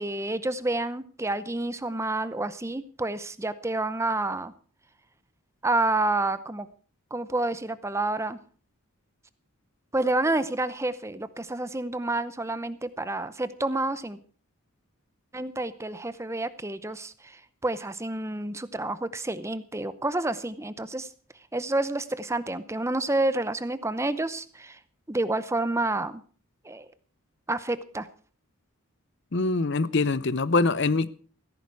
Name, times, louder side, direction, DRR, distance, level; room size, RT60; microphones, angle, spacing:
voice 1, 0.0-4.5 5.6-6.7 7.1-8.4 9.9-14.2 15.3-21.1 21.5-24.8 25.1-26.2 26.6-26.9 27.5-28.1, right 2 dB, 10° right, 14 dB, 0.6 m, -29 dB
voice 2, 29.3-31.1, left 3 dB, 50° left, 17 dB, 0.7 m, -24 dB
15.5 x 14.0 x 4.7 m, 0.42 s
head